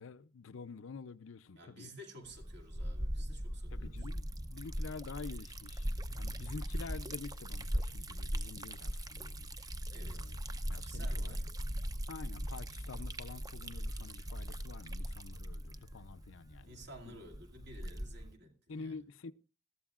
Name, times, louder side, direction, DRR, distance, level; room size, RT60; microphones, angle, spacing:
voice 1, 0.0-1.9 3.7-9.7 10.0-10.4 10.7-11.4 12.1-16.7 17.1-17.2 18.7-19.3, left 4 dB, 90° left, 0.6 m, -48 dB
voice 2, 1.6-4.1 9.9-10.4 10.8-11.5 16.6-19.0, equal, 60° right, 2.4 m, -53 dB
Liquid, 2.3-18.4, equal, 20° right, 0.6 m, -40 dB
20.0 x 13.5 x 2.4 m
head